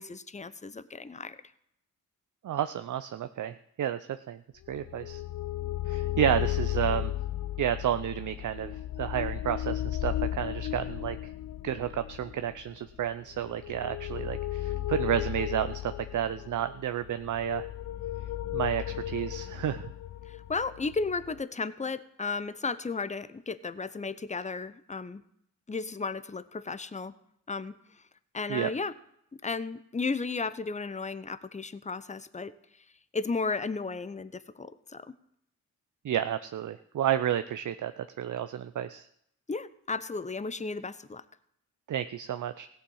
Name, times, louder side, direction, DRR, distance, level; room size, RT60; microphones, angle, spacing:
voice 1, 0.0-1.4 20.3-25.2 25.7-27.1 27.5-27.8 28.3-28.9 29.4-32.5 33.1-35.1 39.5-41.2, left 4 dB, 20° left, 15 dB, 0.8 m, -34 dB
voice 2, 2.4-4.0 4.3-4.4 4.7-5.2 5.9-7.1 7.6-11.2 11.6-17.7 18.5-19.9 28.5-28.7 36.0-39.1 41.9-42.7, right 10 dB, 50° right, 11 dB, 0.7 m, -31 dB
sound 1, 4.7-21.4, left 13 dB, 50° left, 0.5 m, -35 dB
16.5 x 7.0 x 5.6 m, 0.74 s
hypercardioid pair, 40°, 38 cm